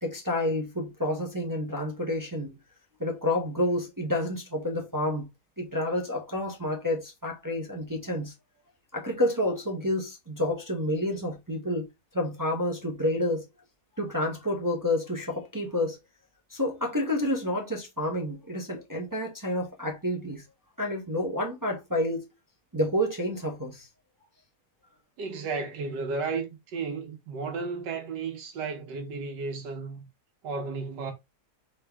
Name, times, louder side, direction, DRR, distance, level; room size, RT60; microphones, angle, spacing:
voice 1, 0.0-2.5 3.0-5.3 5.6-8.3 8.9-11.9 12.1-13.4 14.0-16.0 16.5-20.4 20.8-22.2 22.7-23.9, left 1 dB, 20° right, 0.6 m, -29 dB
voice 2, 25.2-30.1 30.4-31.1, right 4 dB, 80° right, 1.6 m, -33 dB
3.9 x 3.7 x 3.4 m
omnidirectional pair, 1.8 m